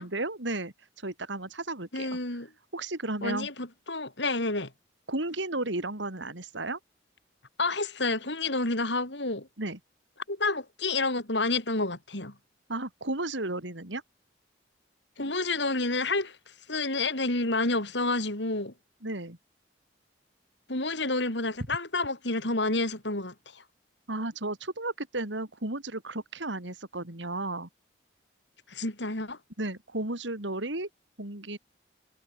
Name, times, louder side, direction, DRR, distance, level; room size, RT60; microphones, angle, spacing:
voice 1, 0.0-2.1 2.7-3.5 5.1-6.8 9.6-9.8 12.7-14.0 19.0-19.4 24.1-27.7 29.6-30.9 31.2-31.6, right 2 dB, 80° right, 3.6 m, -33 dB
voice 2, 1.9-2.5 3.2-4.7 7.6-9.5 10.3-12.3 15.2-16.4 16.7-18.7 20.7-23.6 28.7-29.4, left 2 dB, 75° left, 5.8 m, -29 dB
head